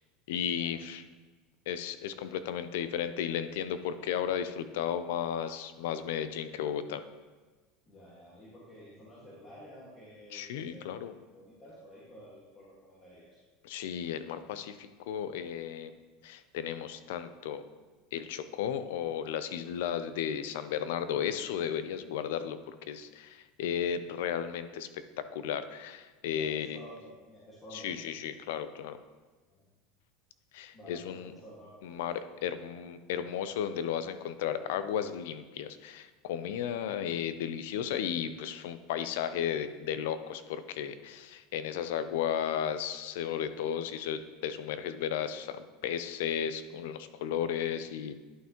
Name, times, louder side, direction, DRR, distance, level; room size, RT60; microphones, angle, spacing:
voice 1, 0.3-1.0 1.7-7.0 10.3-11.1 13.6-17.6 18.1-26.8 27.7-29.0 30.5-31.3 31.8-48.1, left 9 dB, 80° left, 12 dB, 0.5 m, -34 dB
voice 2, 7.9-11.0 11.3-13.4 26.4-27.9 29.5-29.6 30.7-32.1, equal, 20° left, -8 dB, 1.9 m, -51 dB
11.0 x 5.7 x 3.0 m, 1.3 s
supercardioid pair, 145°, 0 cm